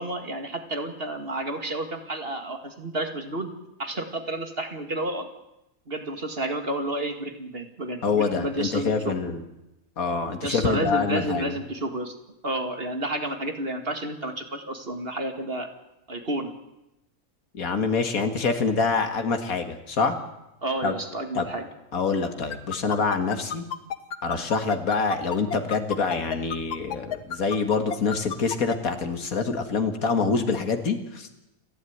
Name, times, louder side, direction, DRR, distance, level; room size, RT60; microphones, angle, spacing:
voice 1, 0.0-3.5 3.8-5.3 5.9-9.3 10.4-12.1 12.4-15.7 16.1-16.5 20.6-21.7, right 1 dB, 40° right, 6 dB, 2.2 m, -31 dB
voice 2, 8.0-9.4 10.0-11.5 17.5-20.1 20.8-20.9 21.3-21.5 21.9-23.6 24.2-31.3, left 4 dB, 70° left, 7 dB, 2.4 m, -26 dB
sound 1, 22.5-28.8, left 8 dB, 85° left, 1.6 m, -30 dB
29.5 x 12.0 x 9.5 m, 0.90 s
omnidirectional pair, 1.6 m